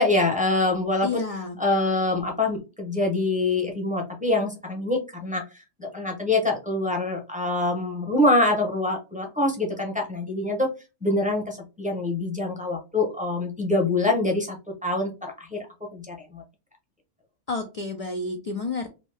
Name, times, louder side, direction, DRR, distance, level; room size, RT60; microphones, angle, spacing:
voice 1, 0.0-1.2 1.6-5.4 5.8-10.7 11.0-14.6 14.8-15.7 15.9-16.4, left 2 dB, 10° right, 1 dB, 0.6 m, -25 dB
voice 2, 1.0-1.6 17.5-18.9, left 3 dB, 55° left, 3 dB, 0.4 m, -30 dB
2.9 x 2.6 x 3.2 m, 0.29 s
omnidirectional pair, 1.2 m